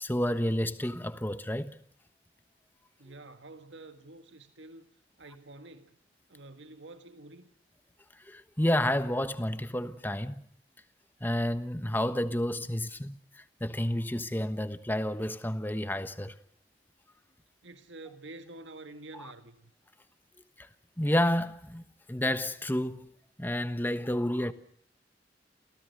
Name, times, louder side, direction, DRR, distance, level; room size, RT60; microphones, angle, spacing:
voice 1, 0.0-1.8 8.2-10.4 11.2-16.4 19.2-19.3 20.6-20.7 21.0-21.8 22.1-23.1 23.4-24.5, left 1 dB, 10° left, 1.2 m, -30 dB
voice 2, 3.0-4.9 5.2-6.0 6.3-7.5 17.6-19.7, right 2 dB, 90° right, 1.8 m, -48 dB
29.0 x 17.0 x 6.7 m
head